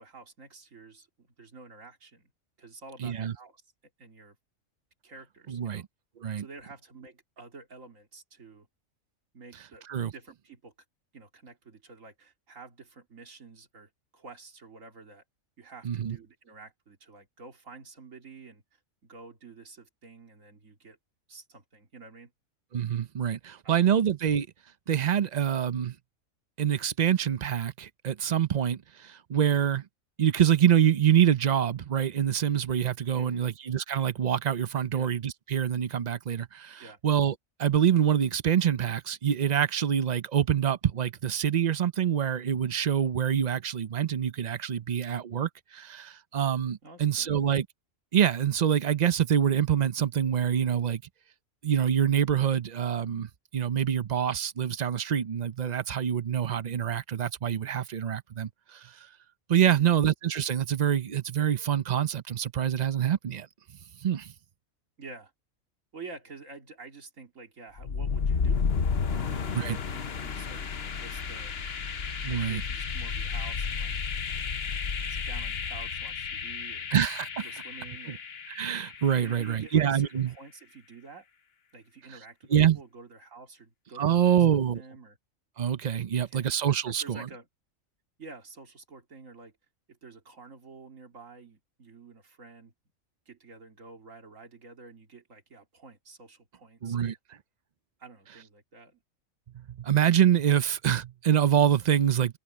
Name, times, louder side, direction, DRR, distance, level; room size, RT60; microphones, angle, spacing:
voice 1, 0.0-2.3 2.6-3.6 4.0-4.4 5.0-5.8 6.4-8.7 9.3-9.9 10.1-10.7 11.1-15.2 15.6-21.0 21.3-22.3 23.6-23.9 33.1-33.5 34.9-35.1 36.8-37.0 46.8-47.3 59.6-59.9 65.0-65.3 65.9-68.7 69.0-71.5 72.3-73.9 75.1-76.9 77.4-78.2 79.2-81.2 81.7-84.5 84.7-85.2 86.0-86.5 86.9-87.5 88.2-89.5 89.9-92.7 93.3-97.2 98.0-99.0, right 4 dB, 70° right, 2.9 m, -49 dB
voice 2, 3.0-3.3 5.5-5.8 6.2-6.4 9.9-10.1 15.8-16.2 22.7-24.5 24.9-25.9 26.6-29.8 30.2-37.3 37.6-47.7 48.1-51.0 51.6-58.8 59.5-63.5 64.0-64.3 69.5-69.8 72.2-72.6 76.9-77.4 78.1-78.2 78.6-80.3 82.5-82.8 84.0-84.8 85.6-87.2 96.8-97.2 99.5-102.4, right 9 dB, 50° right, 0.5 m, -26 dB
sound 1, 67.8-79.6, left 5 dB, 50° left, 1.2 m, -32 dB
omnidirectional pair, 1.4 m